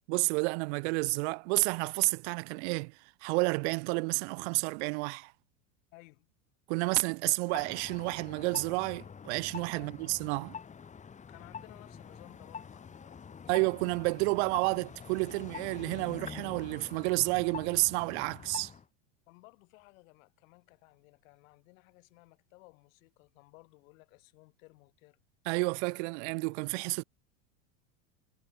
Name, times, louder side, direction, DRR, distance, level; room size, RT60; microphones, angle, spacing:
voice 1, 0.1-2.9 3.2-5.3 6.7-10.6 13.5-18.7 25.5-27.0, right 30 dB, 55° right, 0.5 m, -30 dB
voice 2, 5.9-6.3 9.8-10.0 11.3-13.3 19.3-25.2, left 24 dB, 65° left, 6.1 m, -58 dB
sound 1, 7.5-18.8, left 6 dB, 15° left, 2.4 m, -46 dB
supercardioid pair, 145°, 42 cm